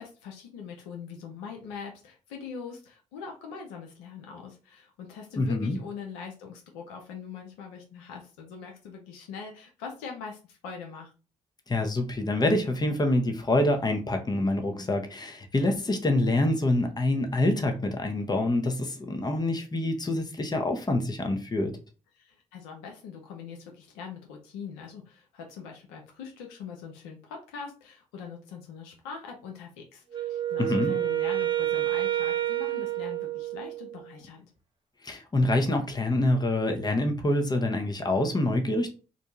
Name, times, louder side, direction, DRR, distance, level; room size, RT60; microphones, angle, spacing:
voice 1, 0.0-11.1 22.2-34.5, left 6 dB, 90° left, 0.5 m, -42 dB
voice 2, 5.4-5.8 11.7-21.7 30.6-30.9 35.0-38.9, left 1 dB, 25° left, 0.7 m, -26 dB
Wind instrument woodwind instrument, 30.1-34.0, right 13 dB, 30° right, 0.8 m, -29 dB
2.6 x 2.2 x 2.9 m
hypercardioid pair, 45°, 16 cm